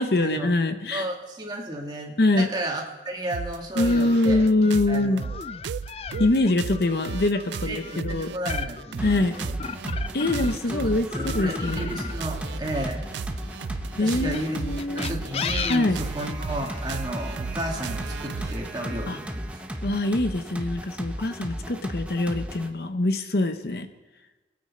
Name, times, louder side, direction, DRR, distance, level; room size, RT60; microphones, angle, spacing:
voice 1, 0.0-1.1 2.2-2.5 3.8-5.2 6.2-8.3 9.0-9.3 10.1-11.9 14.0-15.1 15.7-16.0 19.1-19.2 19.8-23.9, left 2 dB, 60° left, 8 dB, 0.8 m, -24 dB
voice 2, 0.9-4.4 4.9-5.4 7.7-9.6 10.7-13.0 14.0-14.6 15.0-19.6, right 1 dB, 25° right, 0 dB, 2.1 m, -33 dB
sound 1, 3.3-18.7, right 5 dB, 85° right, 0.4 m, -35 dB
sound 2, 3.9-10.7 11.1-13.5 14.2-16.8, left 6 dB, 35° left, 0.4 m, -36 dB
sound 3, 9.0-22.7, equal, 5° right, 0.8 m, -35 dB
22.5 x 8.6 x 4.3 m, 1.2 s
head